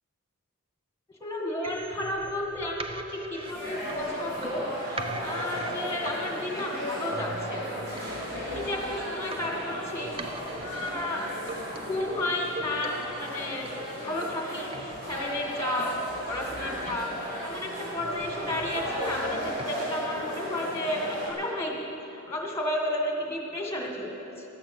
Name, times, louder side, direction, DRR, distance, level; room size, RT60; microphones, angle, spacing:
voice 1, 1.2-8.1 8.5-10.1 10.5-11.2 11.7-15.9 16.3-24.5, left 1 dB, 10° left, 0 dB, 1.9 m, -32 dB
sound 1, 1.6-19.6, right 3 dB, 25° right, 0.5 m, -43 dB
sound 2, 3.4-21.3, equal, 50° right, 3.9 m, -36 dB
13.0 x 13.0 x 6.1 m, 3.0 s
head